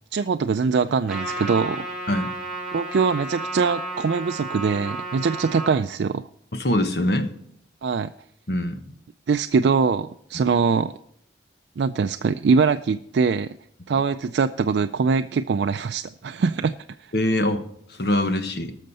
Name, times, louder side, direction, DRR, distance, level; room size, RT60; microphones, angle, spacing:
voice 1, 0.1-1.9 2.7-6.3 7.8-8.1 9.3-10.9 11.8-13.6 13.9-17.1, right 5 dB, 70° right, 8 dB, 0.4 m, -23 dB
Trumpet, 1.1-5.8, right 2 dB, ahead, 4.9 m, -32 dB
voice 2, 6.5-7.3 8.5-8.8 17.1-17.6 17.9-18.8, left 1 dB, 60° left, 8 dB, 1.2 m, -23 dB
19.0 x 6.5 x 4.2 m, 0.72 s
head